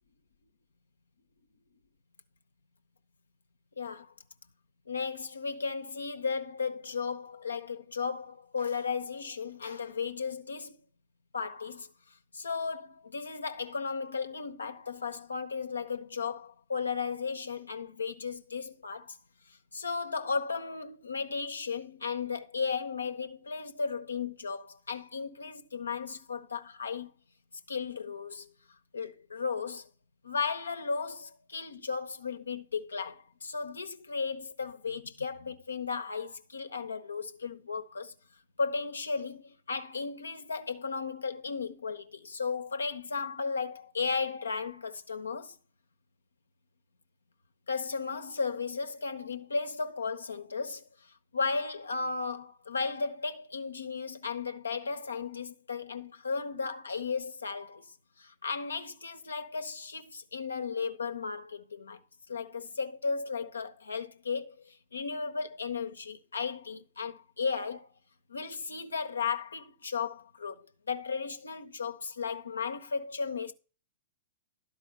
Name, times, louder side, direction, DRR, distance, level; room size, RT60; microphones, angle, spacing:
voice 1, 3.8-4.1 4.9-10.8 11.3-11.9 12.3-19.2 19.5-27.1 27.7-28.5 28.9-29.9 30.2-38.1 38.6-45.6 47.7-57.9 58.2-62.0 62.3-67.9 68.3-73.5, left 5 dB, 70° left, 0.9 m, -35 dB
11.5 x 4.7 x 5.9 m
figure-of-eight pair, 105°, 0 cm